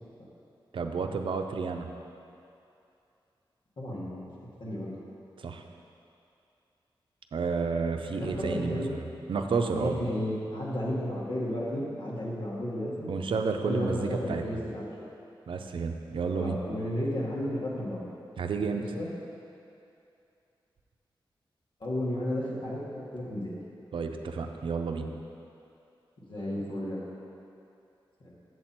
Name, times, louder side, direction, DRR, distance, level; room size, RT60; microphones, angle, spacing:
voice 1, 0.7-1.9 5.4-5.6 7.3-9.0 9.3-10.0 13.1-14.4 15.5-16.6 18.4-18.8 23.9-25.1, right 5 dB, 75° right, 4 dB, 0.6 m, -31 dB
voice 2, 3.8-4.3 4.6-4.9 8.2-8.9 9.7-13.1 13.6-14.8 16.3-18.0 18.7-19.1 21.8-23.6 26.3-27.1 28.2-28.3, left 1 dB, 65° left, -6 dB, 1.9 m, -33 dB
7.5 x 7.5 x 4.4 m, 2.7 s
wide cardioid pair, 115°, 9 cm